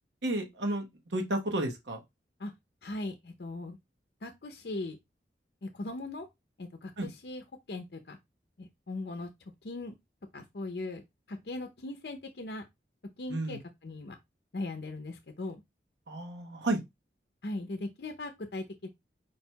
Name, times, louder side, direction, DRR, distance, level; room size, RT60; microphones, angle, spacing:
voice 1, 0.2-0.8 1.1-2.0 7.0-7.1 13.3-13.6 16.1-16.8, right 1 dB, 85° right, 1.0 m, -31 dB
voice 2, 2.8-3.8 4.2-5.0 5.6-6.3 6.6-8.2 8.6-9.3 9.6-9.9 10.3-11.0 11.3-12.6 13.2-14.2 14.5-15.6 17.4-18.9, left 2 dB, 65° left, 0.6 m, -39 dB
4.6 x 2.2 x 4.5 m
head